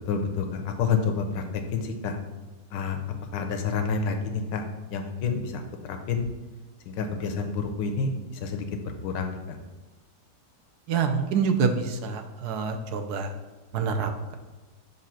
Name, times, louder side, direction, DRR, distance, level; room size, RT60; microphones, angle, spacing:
voice 1, 0.1-2.2 2.7-3.0 3.3-4.6 4.9-6.2 6.9-8.6 9.0-9.6, left 5 dB, 85° left, 5 dB, 1.4 m, -29 dB
voice 2, 10.9-13.3 13.7-14.4, right 5 dB, 70° right, 6 dB, 1.1 m, -26 dB
7.2 x 2.7 x 5.7 m, 1.2 s
omnidirectional pair, 1.9 m